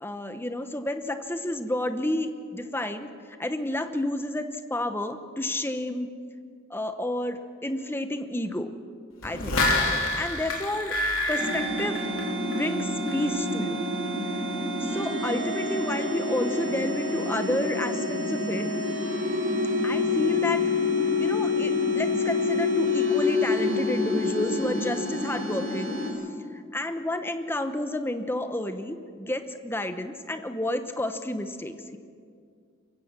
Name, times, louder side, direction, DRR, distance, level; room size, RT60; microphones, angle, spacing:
voice 1, 0.0-3.1 3.4-6.1 6.7-8.7 9.2-10.9 11.3-12.0 12.4-13.9 14.3-18.7 19.8-20.6 21.2-26.0 26.5-32.0, left 1 dB, 10° left, 8 dB, 0.9 m, -31 dB
sound 1, 9.2-12.7 13.1-13.2, left 2 dB, 80° left, 3.4 m, -27 dB
sound 2, 11.4-26.1, left 3 dB, 60° right, 5.4 m, -27 dB
23.5 x 15.5 x 7.4 m, 2.2 s
head